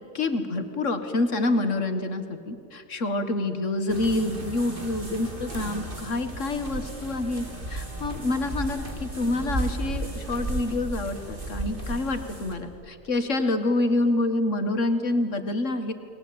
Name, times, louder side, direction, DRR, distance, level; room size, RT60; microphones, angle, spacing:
voice 1, 0.1-15.9, left 2 dB, 75° left, 8 dB, 2.0 m, -27 dB
sound 1, 3.9-12.5, right 2 dB, 45° right, 3.4 m, -34 dB
29.5 x 21.0 x 8.7 m, 2.7 s
omnidirectional pair, 1.3 m